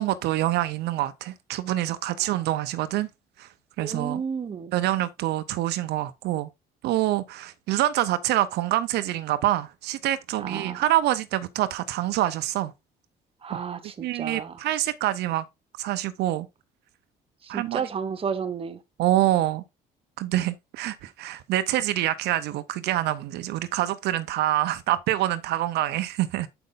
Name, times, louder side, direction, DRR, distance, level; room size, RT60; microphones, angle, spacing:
voice 1, 0.0-3.1 3.4-3.5 3.8-4.2 4.7-6.5 6.8-12.7 14.0-15.4 15.8-16.5 17.5-17.8 19.0-19.6 20.2-26.5, right 14 dB, 80° right, 0.7 m, -26 dB
voice 2, 3.8-4.7 10.4-10.8 13.4-14.6 17.4-18.8, right 6 dB, 35° right, 1.1 m, -32 dB
7.8 x 5.3 x 3.9 m
cardioid pair, 110°, 17 cm